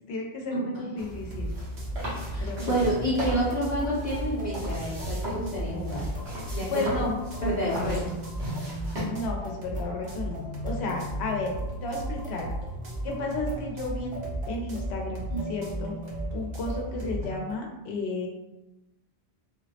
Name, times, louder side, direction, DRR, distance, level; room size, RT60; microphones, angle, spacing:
voice 1, 0.0-1.6 2.4-2.9 6.7-7.2 9.1-11.5 11.8-12.5 13.0-14.2 14.5-16.0 16.3-18.3, left 2 dB, 80° left, 0 dB, 0.9 m, -33 dB
voice 2, 0.5-0.8 2.3-6.1 6.5-7.0 7.4-8.1 15.3-15.4, right 1 dB, 45° left, -7 dB, 0.7 m, -29 dB
sound 1, 1.0-9.1, equal, 80° right, 1.3 m, -38 dB
sound 2, 1.1-17.3, right 1 dB, 50° right, 0.7 m, -35 dB
sound 3, 3.4-17.6, left 1 dB, 10° right, 0.5 m, -46 dB
3.4 x 2.0 x 2.7 m, 0.99 s
omnidirectional pair, 1.1 m